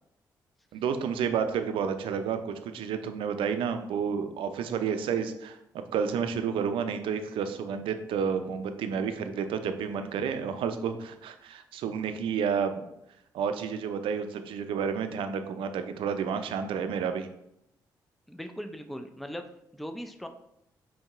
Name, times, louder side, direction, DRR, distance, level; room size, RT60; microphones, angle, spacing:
voice 1, 0.7-12.8 13.3-17.3, right 7 dB, 75° right, 9 dB, 0.4 m, -30 dB
voice 2, 18.3-19.5 19.7-20.3, equal, ahead, 7 dB, 0.4 m, -39 dB
5.2 x 2.7 x 2.4 m, 0.80 s
hypercardioid pair, 45°, 9 cm